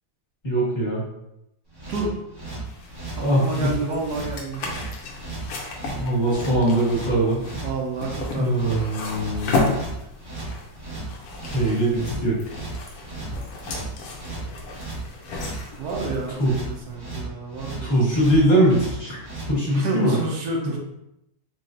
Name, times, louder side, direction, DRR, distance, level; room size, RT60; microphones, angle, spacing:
voice 1, 0.4-1.0 3.2-3.7 5.9-7.4 8.3-9.7 11.5-12.4 16.4-16.5 17.8-19.2 19.5-20.2, right 1 dB, 30° left, -6 dB, 1.5 m, -21 dB
sound 1, 1.7-19.5, right 2 dB, 25° right, 0.6 m, -36 dB
voice 2, 1.9-2.2 3.2-4.7 7.6-9.1 15.8-17.9 19.7-20.8, right 3 dB, 80° right, 0 dB, 1.3 m, -30 dB
sound 2, 2.6-16.9, left 3 dB, 75° left, 1.2 m, -33 dB
4.0 x 3.1 x 2.6 m, 0.84 s
omnidirectional pair, 1.7 m